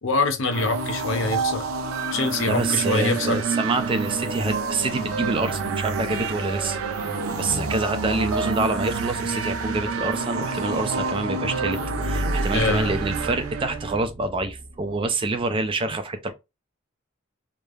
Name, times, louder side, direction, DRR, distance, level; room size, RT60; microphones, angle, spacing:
voice 1, 0.0-1.7 2.1-3.4 12.5-12.9, left 3 dB, 65° left, 0.6 m, -24 dB
sound 1, 0.5-14.0, right 4 dB, 90° right, 0.5 m, -28 dB
Wind instrument woodwind instrument, 2.3-9.6, left 1 dB, 25° left, 1.3 m, -43 dB
voice 2, 2.5-6.8 7.4-16.3, right 3 dB, 25° right, 0.3 m, -26 dB
sound 2, 6.0-14.8, equal, 55° right, 0.8 m, -34 dB
3.1 x 2.0 x 2.3 m
head